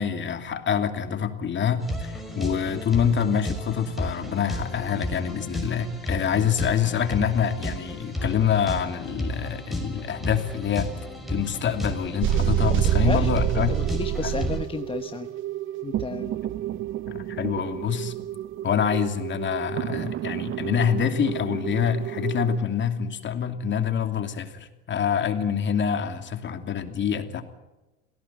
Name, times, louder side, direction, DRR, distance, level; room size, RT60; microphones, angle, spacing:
voice 1, 0.0-13.8 14.2-14.4 17.0-18.1 18.6-27.4, left 8 dB, 30° left, 7 dB, 2.8 m, -26 dB
sound 1, 1.8-14.6, equal, ahead, 6.2 m, -33 dB
sound 2, 12.2-22.6, right 14 dB, 35° right, 0.8 m, -28 dB
voice 2, 12.8-15.3 15.8-16.4, left 4 dB, 15° left, 8 dB, 1.0 m, -33 dB
27.0 x 17.5 x 9.1 m, 1.1 s
hypercardioid pair, 100°, 35 cm